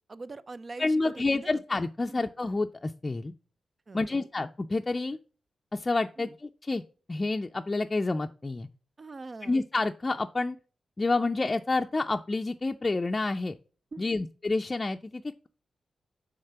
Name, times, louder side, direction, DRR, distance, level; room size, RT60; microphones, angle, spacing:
voice 1, 0.1-1.6 2.1-2.2 3.9-4.3 6.2-6.4 9.0-9.6 13.9-14.3, right 3 dB, 45° right, 0.5 m, -43 dB
voice 2, 0.8-3.3 3.9-5.2 5.7-6.3 6.6-6.8 7.1-8.7 9.4-10.6 11.0-13.6 14.0-15.5, left 3 dB, 35° left, 0.4 m, -29 dB
6.5 x 3.6 x 5.7 m
supercardioid pair, 50°, 0 cm